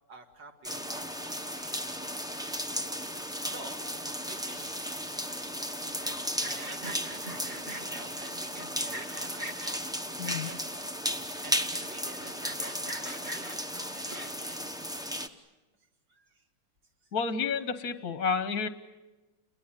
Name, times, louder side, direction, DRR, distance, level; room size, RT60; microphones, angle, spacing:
voice 1, 0.1-2.1 3.5-3.8 4.2-5.4 6.4-9.6 11.4-12.2 12.5-13.5 13.9-14.7 15.1-15.4 16.1-16.4, right 3 dB, 55° right, 4 dB, 3.1 m, -50 dB
sound 1, 0.6-15.3, equal, 5° right, 0.5 m, -35 dB
Sawing, 5.9-8.0 8.6-9.7 10.2-10.8 11.3-11.4 11.5-11.6 12.0-14.5, right 1 dB, 25° right, 1.7 m, -42 dB
voice 2, 10.2-10.5 17.1-18.7, left 5 dB, 50° left, 11 dB, 1.3 m, -30 dB
29.5 x 21.5 x 9.0 m, 1.1 s
omnidirectional pair, 2.3 m